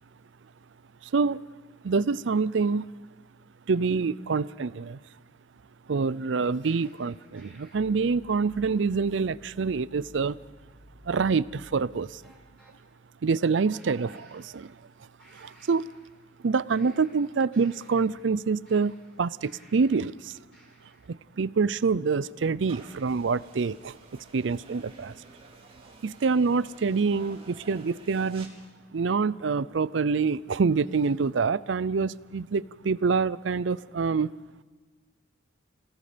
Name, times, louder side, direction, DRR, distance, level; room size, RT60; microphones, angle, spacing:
voice 1, 1.1-1.4 1.8-2.9 3.7-5.0 5.9-10.4 11.1-12.2 13.2-14.8 15.3-15.9 16.4-20.3 21.4-25.1 26.0-28.5 28.9-34.3, right 5 dB, 80° right, 0.5 m, -26 dB
sound 1, 6.6-12.8 13.7-14.9 15.2-16.4 16.7-20.1 20.5-21.2, equal, 5° left, 5.1 m, -55 dB
sound 2, 22.7-28.5, right 2 dB, 30° right, 3.6 m, -51 dB
29.5 x 18.0 x 5.1 m
head